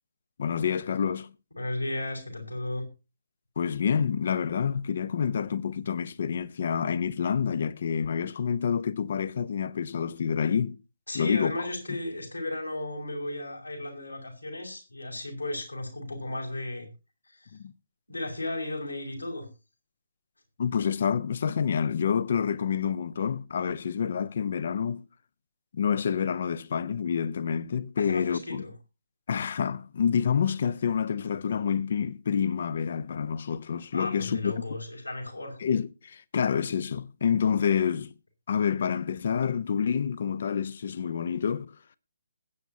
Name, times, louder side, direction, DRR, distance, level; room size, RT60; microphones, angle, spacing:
voice 1, 0.4-1.3 3.6-10.8 11.1-11.7 17.5-17.7 20.6-25.1 25.7-28.6 29.3-34.5 35.6-38.1 38.5-41.7, left 7 dB, 45° left, 0.8 m, -28 dB
voice 2, 1.6-2.9 11.1-16.9 17.3-17.6 18.1-19.5 28.0-28.7 33.9-35.6, left 1 dB, 80° left, 5.3 m, -35 dB
21.0 x 9.3 x 2.8 m
figure-of-eight pair, 140°, 0 cm